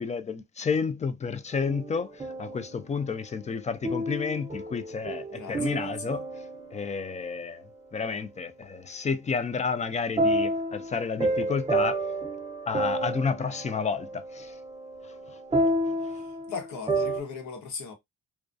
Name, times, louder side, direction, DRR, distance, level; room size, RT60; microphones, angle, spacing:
voice 1, 0.0-6.2 6.7-7.6 7.9-12.0 12.7-14.5, left 5 dB, 25° left, 0.4 m, -31 dB
sound 1, 1.5-2.8 3.8-7.1 10.2-17.2, right 1 dB, 20° right, 0.6 m, -30 dB
voice 2, 5.3-6.1 16.0-17.9, left 5 dB, 75° left, 1.0 m, -38 dB
2.3 x 2.2 x 2.5 m
cardioid pair, 90°, 30 cm